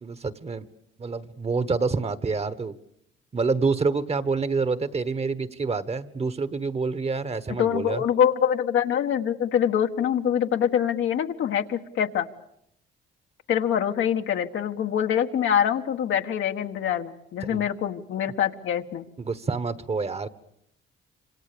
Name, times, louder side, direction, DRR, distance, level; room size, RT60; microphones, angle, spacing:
voice 1, 0.0-0.6 1.0-2.7 3.3-8.0 17.4-17.7 19.2-20.3, right 4 dB, 30° right, 14 dB, 1.3 m, -27 dB
voice 2, 7.6-12.3 13.5-19.0, left 9 dB, 75° left, 5 dB, 1.5 m, -24 dB
26.5 x 26.0 x 6.9 m, 0.76 s
cardioid pair, 90°, 20 cm